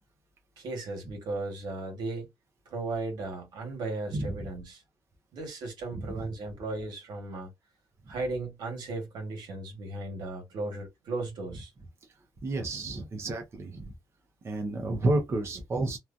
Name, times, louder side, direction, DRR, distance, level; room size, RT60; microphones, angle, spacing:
voice 1, 0.6-2.3 2.6-4.8 5.3-7.5 8.1-11.7, right 2 dB, 80° right, 1.4 m, -36 dB
voice 2, 4.1-4.4 6.0-6.1 12.4-13.8 14.4-16.0, right 2 dB, 35° right, 0.7 m, -30 dB
3.0 x 2.3 x 2.5 m
cardioid pair, 105°, 7 cm